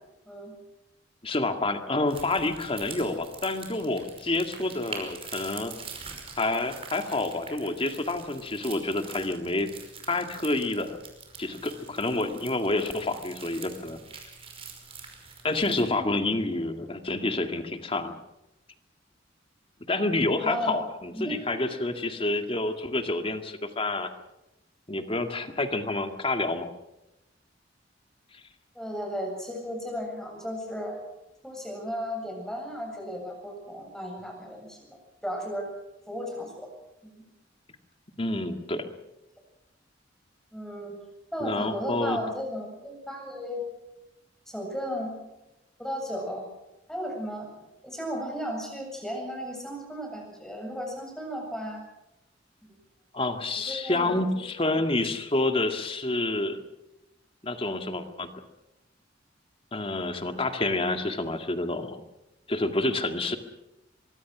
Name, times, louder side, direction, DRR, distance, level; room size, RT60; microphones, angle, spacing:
voice 1, 1.2-5.7 6.4-9.7 10.1-11.0 11.4-14.0 15.4-18.1 19.9-24.1 24.9-26.7 38.2-38.9 41.4-42.2 53.1-56.7 57.4-58.3 59.7-62.0 62.5-63.4, left 2 dB, 30° left, 7 dB, 2.1 m, -28 dB
sound 1, 2.1-15.9, right 5 dB, 30° right, 5.3 m, -45 dB
voice 2, 20.4-20.7 21.1-21.4 28.7-31.0 31.4-34.8 35.2-35.7 36.1-36.7 37.0-37.3 40.5-40.9 41.3-43.6 44.5-45.1 45.8-46.5 46.9-47.5 47.8-51.8 53.7-54.1, equal, 5° left, 1 dB, 7.6 m, -34 dB
24.0 x 23.0 x 6.2 m, 0.92 s
head